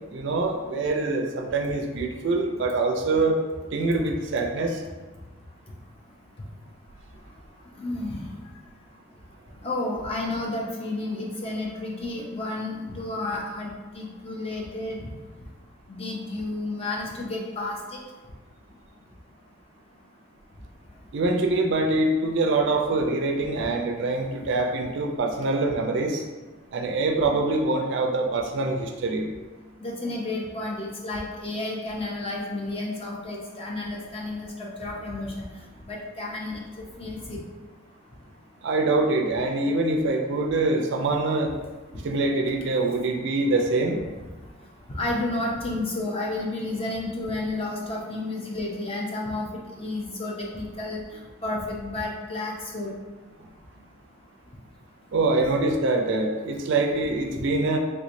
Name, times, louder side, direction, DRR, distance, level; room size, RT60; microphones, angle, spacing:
voice 1, 0.1-3.4 3.7-4.8 21.1-26.2 26.7-29.3 38.6-41.5 42.0-44.0 55.1-57.8, right 2 dB, 55° right, 2 dB, 0.3 m, -24 dB
voice 2, 7.8-8.2 9.6-15.0 15.9-17.8 29.8-35.4 35.9-37.4 45.0-51.0 51.4-52.9, left 2 dB, 25° left, -2 dB, 0.5 m, -31 dB
3.3 x 3.1 x 2.5 m, 1.3 s
head